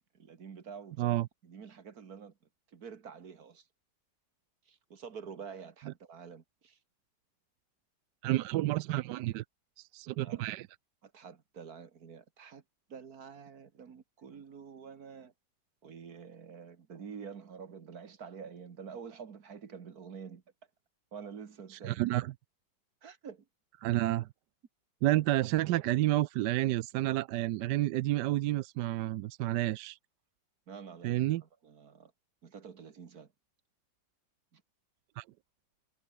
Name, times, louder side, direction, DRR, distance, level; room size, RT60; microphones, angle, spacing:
voice 1, 0.1-2.3 2.7-3.7 4.7-6.8 10.1-10.5 11.0-12.6 12.9-15.3 15.8-20.4 21.1-22.0 23.0-23.5 30.7-32.1 32.4-33.3 34.5-34.6, right 6 dB, 55° right, 2.1 m, -48 dB
voice 2, 8.2-9.4 9.8-10.7 21.7-22.3 23.8-24.3 25.0-30.0 31.0-31.4 35.2-35.3, right 16 dB, 75° right, 1.2 m, -30 dB
omnidirectional pair, 1.9 m